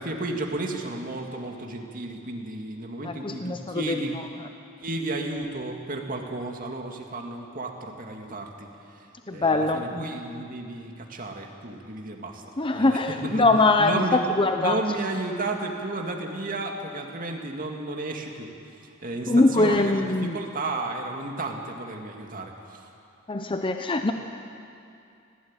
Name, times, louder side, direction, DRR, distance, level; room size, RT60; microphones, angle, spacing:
voice 1, 0.0-4.2 4.8-8.7 9.3-12.4 12.7-13.5 13.8-14.2 14.6-18.5 18.8-22.8, right 2 dB, 45° right, 2 dB, 2.3 m, -33 dB
voice 2, 3.0-4.0 9.3-10.0 12.6-14.8 19.3-20.4 23.3-24.1, left 2 dB, 25° left, 6 dB, 0.8 m, -22 dB
19.5 x 16.5 x 9.0 m, 2.5 s
head